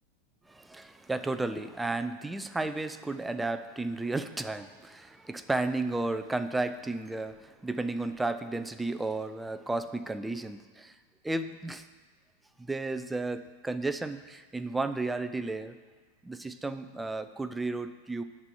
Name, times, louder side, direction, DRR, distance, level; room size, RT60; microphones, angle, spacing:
voice 1, 0.5-10.9 11.2-11.8 12.6-15.8 16.2-18.2, right 2 dB, 5° right, 11 dB, 0.5 m, -33 dB
11.0 x 4.4 x 7.7 m, 1.4 s
figure-of-eight pair, 90°, 0 cm